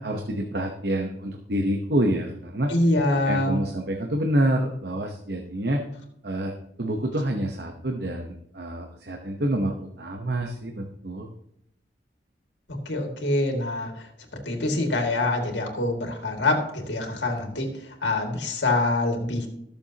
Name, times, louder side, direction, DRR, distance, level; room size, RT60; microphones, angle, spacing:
voice 1, 0.0-2.7 3.2-5.8 6.2-11.3, right 1 dB, 65° right, 3 dB, 1.0 m, -27 dB
voice 2, 2.7-3.6 12.9-13.9 14.5-17.7 18.0-19.5, left 2 dB, 90° left, 2 dB, 2.2 m, -25 dB
19.0 x 7.0 x 2.9 m, 0.76 s
head